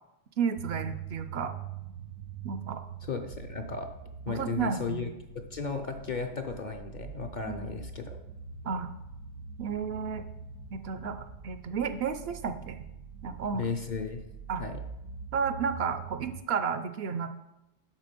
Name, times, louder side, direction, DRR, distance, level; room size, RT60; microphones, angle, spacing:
voice 1, 0.4-1.5 2.4-2.8 4.3-5.1 7.5-7.7 8.6-8.9 9.6-10.3 10.7-11.2 11.4-12.8 13.2-13.7 14.5-14.6 15.3-17.3, right 6 dB, 65° right, 10 dB, 0.7 m, -32 dB
sound 1, 0.6-16.4, right 7 dB, 85° right, 1.0 m, -44 dB
voice 2, 3.0-3.9 4.3-5.1 5.3-8.2 13.5-14.2 14.6-14.8, left 4 dB, 50° left, 5 dB, 0.6 m, -35 dB
7.5 x 5.7 x 5.1 m, 0.91 s
omnidirectional pair, 1.2 m